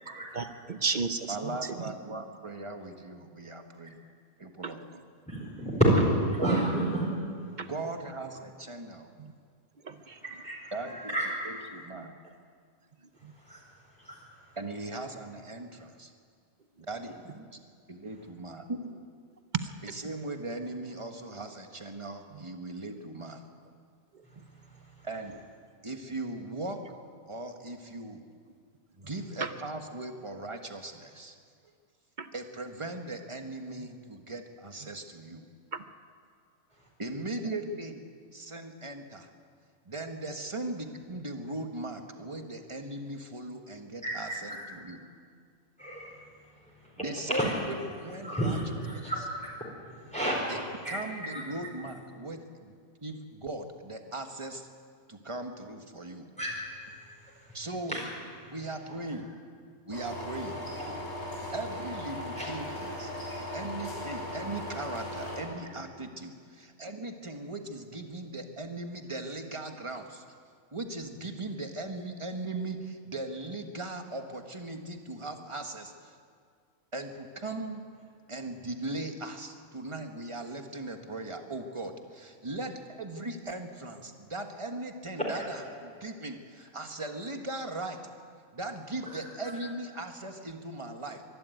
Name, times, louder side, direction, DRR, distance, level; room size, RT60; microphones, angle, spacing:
voice 1, 0.3-1.9 4.6-4.9 7.6-7.7 9.2-9.3 9.8-10.2 13.2-13.3 19.5-19.7 22.3-22.4 24.1-24.2 29.0-29.1 29.4-29.5 32.2-32.3 33.8-33.9 35.7-35.8, right 5 dB, 40° right, 10 dB, 0.7 m, -34 dB
voice 2, 1.3-4.0 4.4-5.0 6.4-6.6 7.6-9.1 10.7-11.1 11.4-12.1 14.6-16.1 16.9-17.6 17.9-18.9 19.8-23.4 25.0-25.4 25.8-26.8 27.3-28.2 29.0-31.3 32.3-35.5 37.0-38.0 38.3-39.3 39.8-45.0 47.0-48.6 49.0-49.1 50.5-50.6 50.9-52.7 53.0-54.7 55.1-56.3 57.5-57.9 58.5-59.3 59.8-60.6 61.5-63.1 63.5-70.2 70.7-76.1 76.9-77.8 78.3-88.0 88.5-91.2, right 2 dB, 20° right, 5 dB, 1.5 m, -38 dB
voice 3, 5.3-6.0 6.4-7.1 10.2-11.5 13.3-13.6 14.0-14.2 24.3-24.4 24.7-25.1 44.0-44.6 45.8-46.3 46.5-47.5 48.2-50.5 50.8-51.0 51.3-51.4 56.4-56.6 57.2-57.6 57.9-58.1 58.4-58.6 60.9-61.1 62.3-62.8 85.2-85.3 85.6-85.7 89.0-89.6, right 1 dB, 5° left, -4 dB, 4.7 m, -31 dB
sound 1, 59.9-65.4, left 1 dB, 60° left, 6.6 m, -38 dB
24.0 x 12.0 x 9.3 m, 2.1 s
omnidirectional pair, 1.5 m